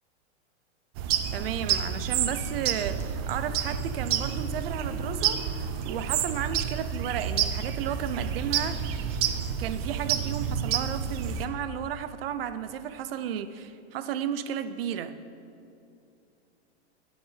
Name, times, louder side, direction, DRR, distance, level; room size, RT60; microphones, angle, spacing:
sound 1, 1.0-11.5, right 8 dB, 25° right, 0.4 m, -29 dB
voice 1, 1.3-5.4 5.8-8.8 9.2-15.2, right 9 dB, 55° right, 12 dB, 0.8 m, -33 dB
9.5 x 7.7 x 8.1 m, 2.6 s
supercardioid pair, 155°, 34 cm